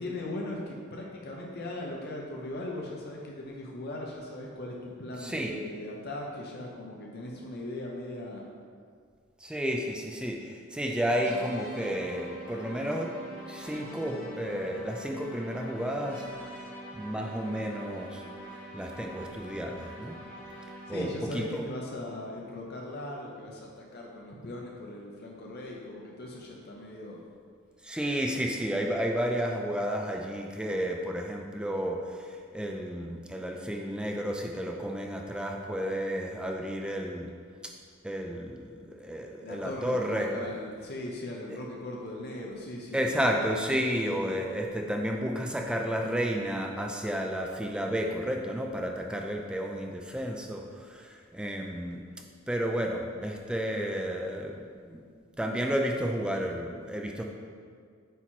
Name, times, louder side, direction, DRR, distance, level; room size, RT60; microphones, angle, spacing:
voice 1, 0.0-8.4 20.9-27.2 39.4-43.3, left 1 dB, 50° left, -2 dB, 0.7 m, -39 dB
voice 2, 5.2-5.6 9.4-13.2 13.5-16.2 16.5-16.7 16.9-18.2 18.7-20.2 20.9-21.6 27.8-37.3 37.6-37.7 38.0-40.5 42.9-52.1 52.5-55.0 55.4-57.2, equal, 5° right, 1 dB, 0.4 m, -32 dB
sound 1, 11.2-21.3, right 1 dB, 10° left, 1.5 m, -44 dB
8.0 x 3.0 x 4.4 m, 2.1 s
head